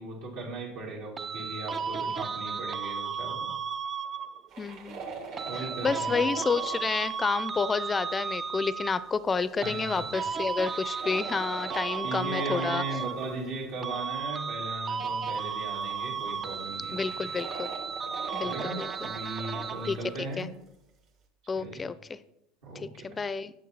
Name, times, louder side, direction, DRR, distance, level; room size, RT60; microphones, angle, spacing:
voice 1, 0.0-3.5 5.4-6.2 9.6-10.3 12.0-17.1 18.3-20.5 21.5-21.9 22.6-23.1, right 2 dB, 75° right, -3 dB, 2.3 m, -37 dB
sound 1, 1.2-4.5 5.4-9.2 9.6-13.6 13.8-20.2, right 6 dB, 35° right, 0.4 m, -34 dB
sound 2, 4.5-6.9 9.1-9.3 9.6-13.6 14.5-14.6 15.3-15.5 15.9-19.8, right 4 dB, 60° right, 1.6 m, -42 dB
voice 2, 4.6-5.1 5.5-12.8 16.9-17.7 18.3-18.9 19.9-20.0 20.4-20.5 21.5-22.2 22.7-23.5, left 4 dB, 25° left, 16 dB, 0.5 m, -30 dB
8.4 x 6.4 x 4.1 m, 0.83 s
hypercardioid pair, 85°, 0 cm